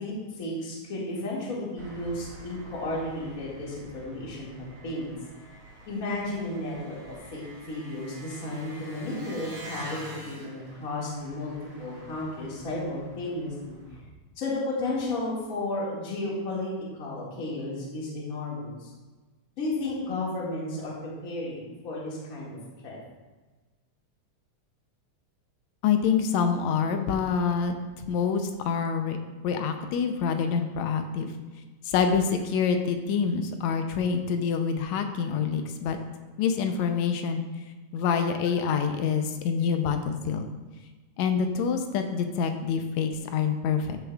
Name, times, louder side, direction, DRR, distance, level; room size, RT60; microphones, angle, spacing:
voice 1, 0.0-5.1 5.9-10.0 10.3-11.5 11.8-13.8 14.4-18.9 19.6-22.6 22.8-23.0, left 2 dB, 30° left, -5 dB, 2.1 m, -33 dB
Engine, 1.8-14.0, right 1 dB, 50° right, 2.7 m, -46 dB
voice 2, 25.8-29.2 29.4-31.3 31.8-36.0 36.4-37.5 37.9-40.5 41.2-44.0, left 6 dB, 80° left, 6 dB, 1.9 m, -26 dB
13.5 x 6.8 x 2.3 m, 1.2 s
omnidirectional pair, 3.3 m